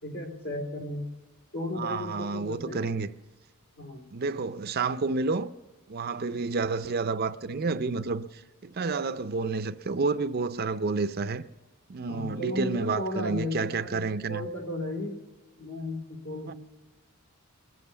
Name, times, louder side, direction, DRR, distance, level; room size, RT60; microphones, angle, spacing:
voice 1, 0.0-1.1 1.5-2.8 3.8-4.1 12.1-15.2 15.6-16.5, left 1 dB, 70° left, 3.7 m, -35 dB
voice 2, 1.8-3.1 4.1-5.5 5.9-11.4 11.9-14.5 16.5-16.6, right 4 dB, 45° right, 0.5 m, -30 dB
22.5 x 7.5 x 6.9 m
head